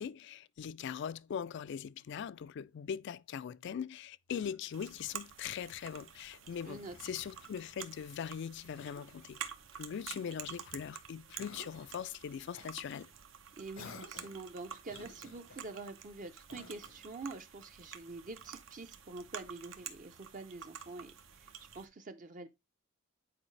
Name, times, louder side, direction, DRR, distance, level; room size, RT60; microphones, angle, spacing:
voice 1, 0.0-13.1, left 8 dB, 60° left, 0.3 m, -41 dB
Cough, 4.3-5.0 6.4-7.6 8.8-9.3 10.1-10.9 11.4-12.0 12.5-12.7 13.7-14.5 14.9-15.7 16.5-17.1, left 3 dB, 75° left, 0.9 m, -54 dB
sound 1, 4.7-21.9, right 8 dB, 75° right, 0.9 m, -49 dB
voice 2, 6.6-7.2 13.6-21.1 21.4-21.5 21.7-22.5, right 3 dB, 40° right, 0.6 m, -46 dB
8.7 x 4.6 x 3.2 m
head